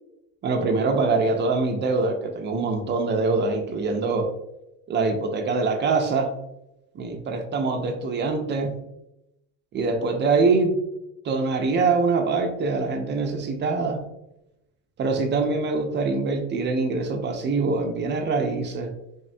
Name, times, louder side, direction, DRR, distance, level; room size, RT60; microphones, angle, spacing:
voice 1, 0.4-4.3 4.9-6.3 6.9-8.7 9.7-10.8 11.2-14.0 15.0-18.9, right 3 dB, 35° right, 5 dB, 0.5 m, -24 dB
3.5 x 2.0 x 2.5 m, 0.87 s
supercardioid pair, 100°, 33 cm